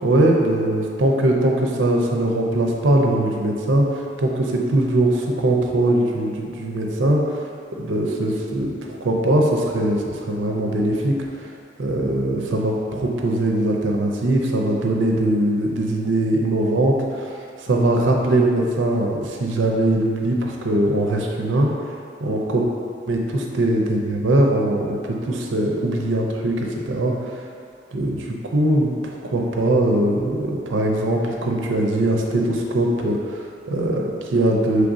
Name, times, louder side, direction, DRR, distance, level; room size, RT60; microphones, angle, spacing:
voice 1, 0.0-7.4 7.8-11.5 11.8-17.3 17.6-21.7 22.2-22.6 23.1-27.1 27.9-34.9, right 1 dB, 75° right, 0 dB, 0.6 m, -21 dB
6.0 x 3.2 x 2.6 m, 2.5 s
head